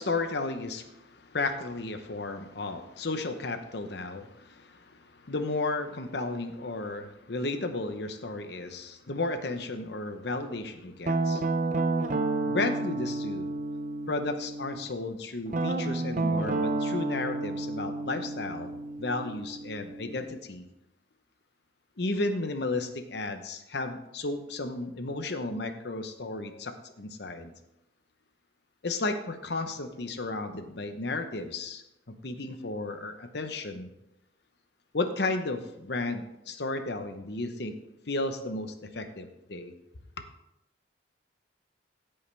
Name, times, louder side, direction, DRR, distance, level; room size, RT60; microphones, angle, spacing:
voice 1, 0.0-11.5 12.4-13.5 14.1-18.7 19.0-20.7 22.0-27.5 28.8-33.9 34.9-37.7 38.1-39.7, left 2 dB, 60° left, 8 dB, 0.9 m, -33 dB
Guitar, 11.1-14.8 15.5-20.2, right 2 dB, 40° right, 0.6 m, -31 dB
16.5 x 5.6 x 3.4 m, 0.86 s
head